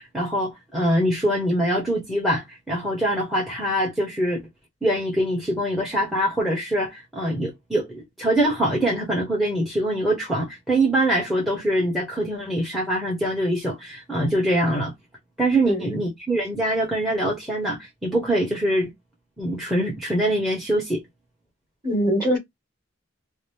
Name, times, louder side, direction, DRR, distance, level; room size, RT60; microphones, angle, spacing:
voice 1, 0.0-4.4 4.8-14.9 15.4-18.9 19.4-21.0, right 1 dB, ahead, 1.1 m, -24 dB
voice 2, 15.6-16.0 21.8-22.4, equal, 25° right, 2.4 m, -23 dB
4.9 x 2.0 x 3.4 m
head